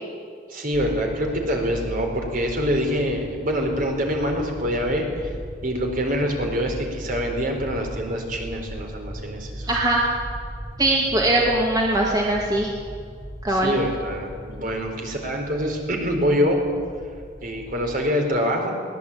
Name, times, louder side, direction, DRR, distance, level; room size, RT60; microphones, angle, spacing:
voice 1, 0.5-5.3 5.6-9.7 13.5-16.6 17.4-18.7, equal, 50° right, 2 dB, 4.3 m, -25 dB
sound 1, 0.7-18.2, equal, 5° right, 1.3 m, -37 dB
voice 2, 9.7-10.0 10.8-12.7 13.4-13.7, right 1 dB, 20° right, -2 dB, 2.3 m, -21 dB
22.5 x 18.0 x 8.7 m, 2.2 s
head